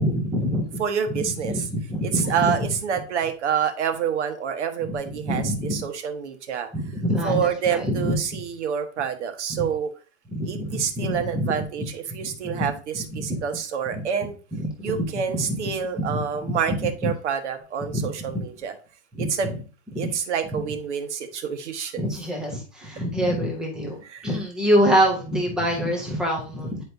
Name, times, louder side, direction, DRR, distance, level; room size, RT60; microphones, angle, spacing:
voice 1, 0.0-0.8 1.1-2.5 4.9-5.8 6.7-8.4 9.5-9.6 10.3-11.9 12.2-12.7 13.1-13.4 13.9-14.0 14.5-15.6 16.0-17.1 17.9-18.0 18.3-18.4 19.1-19.5 20.0-20.1 22.0-26.8, equal, ahead, -1 dB, 0.4 m, -26 dB
voice 2, 0.8-1.7 2.0-6.7 7.2-9.9 10.5-14.4 14.8-18.7 19.2-19.5 19.9-22.1 24.0-24.3, right 7 dB, 75° right, 7 dB, 1.4 m, -27 dB
9.4 x 4.4 x 2.6 m, 0.35 s
supercardioid pair, 175°, 35 cm